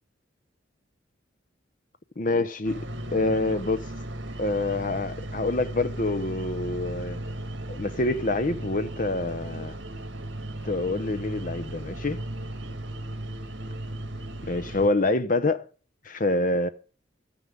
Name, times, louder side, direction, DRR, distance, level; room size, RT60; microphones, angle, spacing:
voice 1, 2.2-2.8 3.1-3.9 4.4-7.2 7.7-9.8 10.6-12.2 14.5-15.6 16.0-16.7, left 2 dB, 45° left, 0.9 m, -26 dB
sound 1, 2.6-14.9, right 1 dB, 70° right, 1.9 m, -36 dB
13.5 x 9.6 x 5.5 m
head